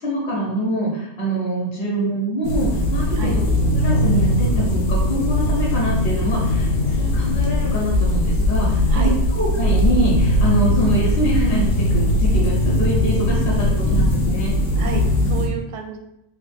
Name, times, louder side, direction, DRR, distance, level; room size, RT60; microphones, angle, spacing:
voice 1, 0.0-14.6, right 1 dB, 55° left, -4 dB, 1.0 m, -24 dB
sound 1, 2.4-15.5, left 1 dB, 85° left, 1.1 m, -19 dB
voice 2, 14.7-16.0, right 6 dB, 85° right, 3 dB, 0.9 m, -30 dB
3.1 x 2.4 x 3.4 m, 0.84 s
omnidirectional pair, 1.3 m